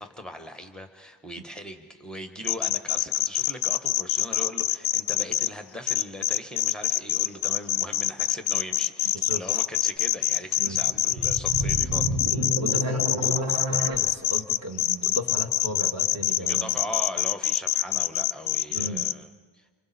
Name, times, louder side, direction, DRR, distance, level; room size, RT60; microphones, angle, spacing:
voice 1, 0.0-12.3 16.4-19.3 19.5-19.7, left 1 dB, ahead, 6 dB, 1.0 m, -39 dB
sound 1, 2.4-5.5 5.9-19.1, left 13 dB, 65° left, 0.5 m, -25 dB
voice 2, 9.1-9.6 10.6-10.8 12.2-16.8 18.7-19.1, equal, 30° right, 5 dB, 1.6 m, -35 dB
sound 2, 10.7-14.0, equal, 90° right, 1.8 m, -29 dB
27.5 x 25.0 x 4.2 m, 1.5 s
wide cardioid pair, 160°, 50 cm